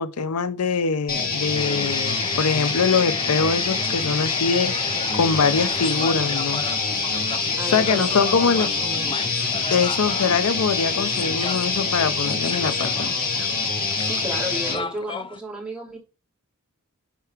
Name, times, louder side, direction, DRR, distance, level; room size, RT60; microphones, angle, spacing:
voice 1, 0.0-4.7 5.1-6.6 7.7-8.7 9.7-13.5, left 5 dB, 85° left, 0.6 m, -23 dB
sound 1, 1.1-14.8, left 4 dB, 40° left, 2.3 m, -25 dB
sound 2, 1.5-15.4, left 5 dB, 25° left, 0.4 m, -35 dB
voice 2, 7.6-9.3 13.9-16.0, equal, 5° right, 2.8 m, -33 dB
10.0 x 4.6 x 3.5 m
head